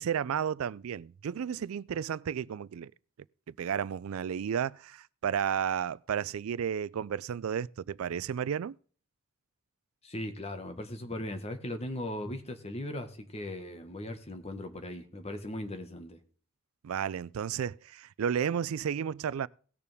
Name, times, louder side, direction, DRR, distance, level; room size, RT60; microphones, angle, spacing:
voice 1, 0.0-2.9 3.5-8.7 16.8-19.5, right 8 dB, 85° right, 0.4 m, -32 dB
voice 2, 10.0-16.2, left 1 dB, 30° left, 1.4 m, -38 dB
18.5 x 6.8 x 3.5 m
head